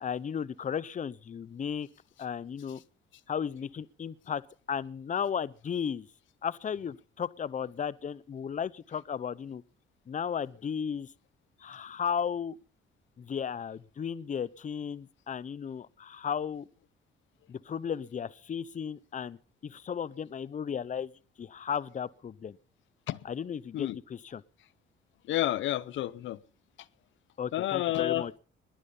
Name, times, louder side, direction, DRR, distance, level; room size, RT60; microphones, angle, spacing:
voice 1, 0.0-1.9 2.2-2.8 3.3-4.4 4.7-6.1 6.4-9.6 10.1-11.1 11.6-12.6 13.2-16.7 17.5-21.1 21.4-22.6 23.2-24.4 27.4-28.4, left 7 dB, 40° left, 0.8 m, -35 dB
voice 2, 25.3-26.4 27.5-28.2, left 13 dB, 75° left, 0.7 m, -29 dB
21.0 x 11.0 x 5.5 m
cardioid pair, 90°, 20 cm